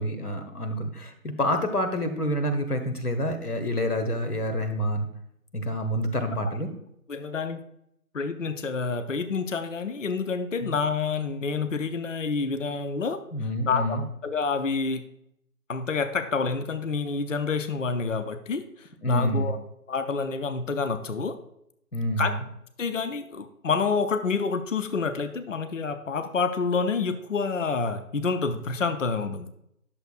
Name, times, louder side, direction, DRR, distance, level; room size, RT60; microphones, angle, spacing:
voice 1, 0.0-5.1 5.5-6.7 10.6-10.8 13.3-14.0 19.0-19.5 21.9-22.4, equal, 80° left, 6 dB, 1.5 m, -28 dB
voice 2, 7.1-7.6 8.1-13.2 13.7-15.0 15.7-19.6 19.9-21.4 22.2-22.3 22.8-29.5, left 4 dB, 55° left, 10 dB, 0.6 m, -28 dB
10.5 x 6.8 x 2.4 m, 0.76 s
figure-of-eight pair, 165°, 45 cm